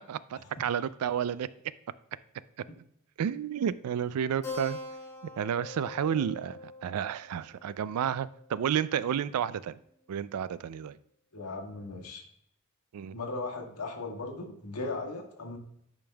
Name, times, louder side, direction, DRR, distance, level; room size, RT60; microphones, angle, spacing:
voice 1, 0.1-1.5 3.2-4.8 5.4-9.8 10.1-11.0 12.9-13.2, right 8 dB, 85° right, 17 dB, 0.3 m, -31 dB
Keyboard (musical), 4.4-9.4, left 3 dB, 15° left, 1.5 m, -44 dB
voice 2, 11.3-12.2 13.1-15.6, left 3 dB, 85° left, 1 dB, 1.4 m, -37 dB
10.0 x 5.2 x 2.3 m, 0.73 s
head